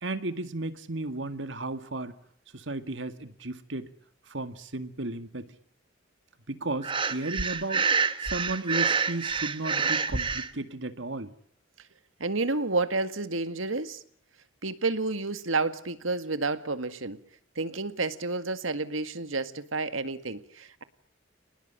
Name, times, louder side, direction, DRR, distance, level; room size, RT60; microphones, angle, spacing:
voice 1, 0.0-2.1 2.5-3.9 4.3-5.6 6.5-11.3, right 2 dB, 70° right, 11 dB, 2.0 m, -34 dB
Breathing, 6.8-10.5, right 5 dB, 25° right, 1.2 m, -27 dB
voice 2, 12.2-14.0 14.6-17.2 17.6-20.8, right 3 dB, 85° right, 11 dB, 1.9 m, -30 dB
29.5 x 20.0 x 9.0 m, 0.67 s
head